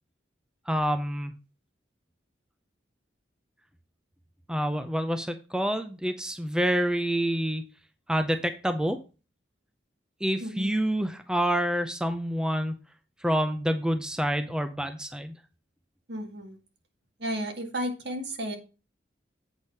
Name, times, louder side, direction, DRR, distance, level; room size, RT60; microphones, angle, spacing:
voice 1, 0.7-1.3 4.5-7.6 8.1-9.0 10.2-12.7 13.2-15.3, equal, 5° right, 8 dB, 0.6 m, -27 dB
voice 2, 10.4-10.7 16.1-16.6 17.2-18.6, equal, 65° right, 4 dB, 2.0 m, -33 dB
8.2 x 5.0 x 5.6 m, 0.31 s
head